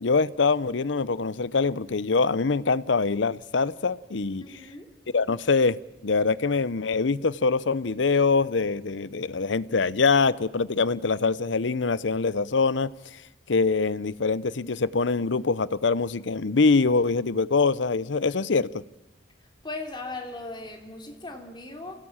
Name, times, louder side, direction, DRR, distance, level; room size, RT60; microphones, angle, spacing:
voice 1, 0.0-4.5 5.1-5.8 6.0-12.9 13.5-18.8, left 4 dB, 75° left, 0.7 m, -24 dB
voice 2, 4.4-4.9 19.6-22.0, left 2 dB, 25° left, 3.4 m, -38 dB
26.0 x 17.0 x 8.8 m
head